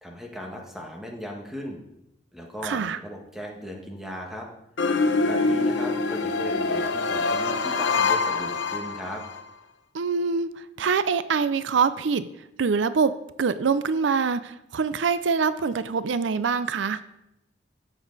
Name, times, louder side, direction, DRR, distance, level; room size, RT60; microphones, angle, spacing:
voice 1, 0.0-1.8 2.3-4.5 5.2-9.2, equal, ahead, 0 dB, 1.6 m, -37 dB
voice 2, 2.6-3.0 9.9-12.3 12.6-13.1 13.4-17.0, right 5 dB, 85° right, 14 dB, 0.5 m, -24 dB
sound 1, 4.8-9.4, left 3 dB, 85° left, 0.9 m, -25 dB
12.0 x 8.1 x 4.0 m, 0.85 s
head